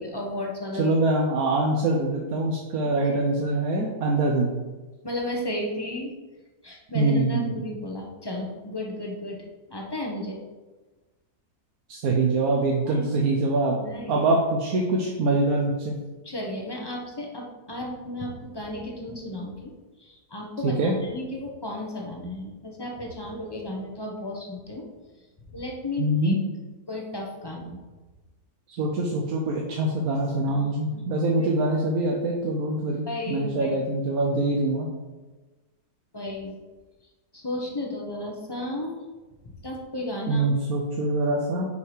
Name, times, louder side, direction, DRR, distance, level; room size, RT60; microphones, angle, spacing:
voice 1, 0.0-0.9 3.0-3.1 5.0-6.1 6.6-9.4 9.7-10.4 12.9-13.1 13.8-14.2 16.2-19.7 20.0-24.8 25.5-26.4 26.9-27.8 30.5-30.6 30.9-31.0 31.3-31.5 33.1-33.8 36.1-36.6 37.3-38.9 39.4-40.4, left 1 dB, 20° left, -1 dB, 0.7 m, -34 dB
voice 2, 0.8-4.5 6.9-7.5 11.9-13.8 14.1-15.9 20.6-20.9 26.0-26.4 28.8-34.9 40.3-41.6, right 2 dB, 65° right, -1 dB, 1.2 m, -24 dB
5.5 x 4.7 x 4.9 m, 1.2 s
omnidirectional pair, 1.8 m